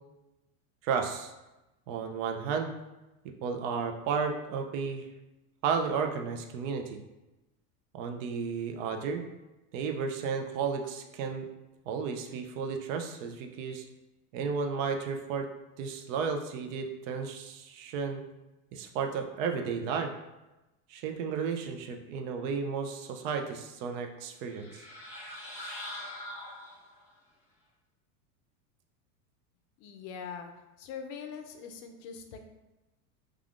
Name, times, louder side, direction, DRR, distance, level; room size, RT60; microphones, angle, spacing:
voice 1, 0.8-1.3 1.9-2.7 3.4-5.0 5.6-7.0 7.9-9.2 9.7-11.5 11.9-13.8 14.3-15.5 15.8-18.2 18.7-20.1 20.9-24.8, right 5 dB, 60° right, 4 dB, 0.5 m, -33 dB
sound 1, 24.5-27.1, left 1 dB, 5° right, 0.5 m, -43 dB
voice 2, 29.8-30.5 30.8-32.4, left 6 dB, 55° left, 5 dB, 0.5 m, -42 dB
3.3 x 2.3 x 2.4 m, 1.0 s
supercardioid pair, 130°, 44 cm